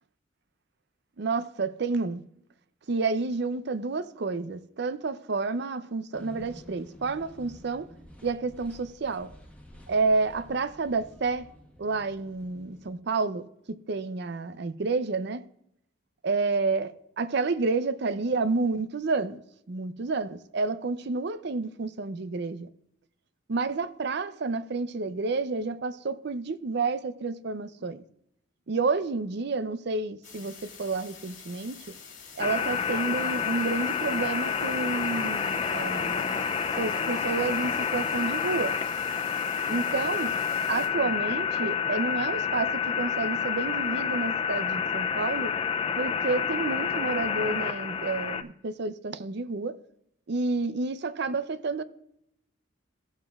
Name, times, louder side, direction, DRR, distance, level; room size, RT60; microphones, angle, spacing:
voice 1, 1.2-2.2 2.9-7.9 8.2-9.3 9.9-11.5 11.8-13.5 13.9-15.4 16.2-19.4 19.7-22.7 23.5-28.0 28.7-31.8 32.4-36.5 36.8-38.8 39.7-40.3 40.7-45.5 46.0-49.8 50.3-51.8, right 3 dB, 60° right, 0.5 m, -30 dB
sound 1, 6.1-12.9, equal, 5° left, 1.1 m, -50 dB
sound 2, 30.2-40.9, left 6 dB, 85° left, 2.1 m, -47 dB
sound 3, 32.4-48.4, left 7 dB, 30° left, 0.4 m, -29 dB
16.0 x 7.4 x 2.4 m
head